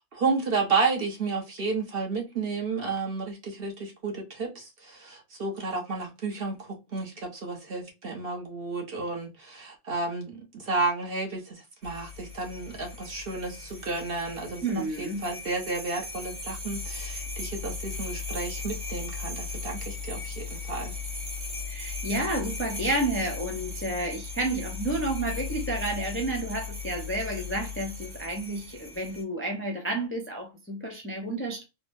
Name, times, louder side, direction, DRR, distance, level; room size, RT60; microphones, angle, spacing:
voice 1, 0.1-11.6 11.8-20.9, right 3 dB, 50° right, 1.1 m, -32 dB
sound 1, 11.8-29.2, left 4 dB, 75° right, 1.5 m, -37 dB
voice 2, 14.6-15.3 21.7-31.6, right 2 dB, 15° left, 0.4 m, -30 dB
3.4 x 2.1 x 2.5 m
omnidirectional pair, 1.3 m